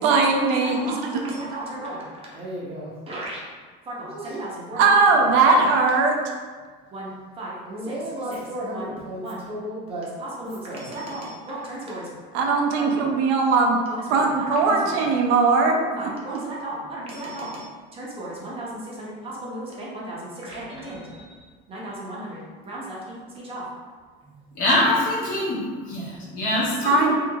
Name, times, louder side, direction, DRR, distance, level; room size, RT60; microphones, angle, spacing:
voice 1, 0.0-0.8 4.8-6.2 12.3-13.8 14.1-15.8 26.8-27.1, right 4 dB, 70° right, 1 dB, 0.5 m, -19 dB
voice 2, 0.6-3.4 3.9-4.9 5.4-5.6 6.9-12.1 12.8-13.0 13.9-15.0 16.0-23.0 23.3-23.6 27.0-27.1, right 1 dB, 25° right, -5 dB, 0.7 m, -34 dB
voice 3, 24.5-27.1, left 1 dB, 45° left, -6 dB, 1.0 m, -24 dB
3.1 x 3.1 x 2.3 m, 1.5 s
cardioid pair, 165°, 21 cm